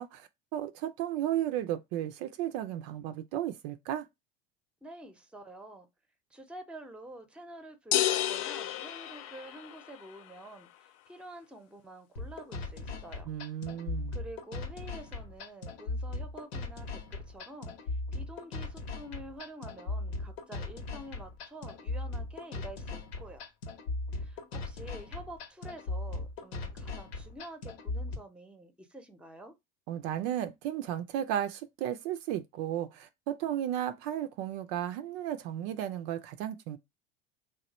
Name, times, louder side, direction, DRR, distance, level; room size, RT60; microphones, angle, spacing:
voice 1, 0.0-4.1 13.3-14.1 29.9-36.8, right 11 dB, 60° right, 0.5 m, -34 dB
voice 2, 4.8-5.9 6.3-13.3 14.1-23.4 24.1-29.6, right 1 dB, 5° right, 0.7 m, -48 dB
sound 1, 7.9-10.0, left 13 dB, 55° left, 0.4 m, -31 dB
sound 2, 12.2-28.2, left 2 dB, 85° left, 1.1 m, -38 dB
3.1 x 2.3 x 4.1 m
hypercardioid pair, 90°, 30 cm